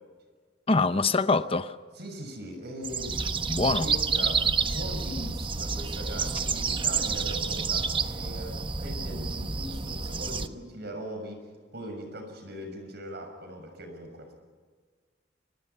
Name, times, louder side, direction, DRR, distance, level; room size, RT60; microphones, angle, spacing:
voice 1, 0.7-1.8 3.5-3.9, left 3 dB, 30° left, 0.8 m, -24 dB
voice 2, 2.0-14.3, equal, 60° right, 6.6 m, -40 dB
sound 1, 2.8-10.5, right 5 dB, 25° right, 1.1 m, -29 dB
29.5 x 25.0 x 5.9 m
head